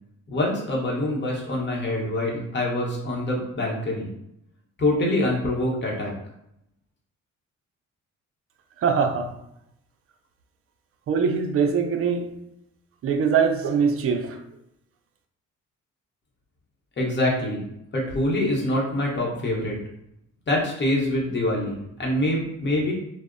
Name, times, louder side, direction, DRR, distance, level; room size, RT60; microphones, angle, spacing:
voice 1, 0.3-4.1 4.8-6.1 17.0-17.6 17.9-19.8 20.5-22.9, left 1 dB, 35° left, 0.9 m, -25 dB
voice 2, 8.8-9.3 11.1-12.3 13.0-14.4, right 6 dB, 45° right, 0.4 m, -22 dB
2.6 x 2.0 x 2.4 m
cardioid pair, 90°, 30 cm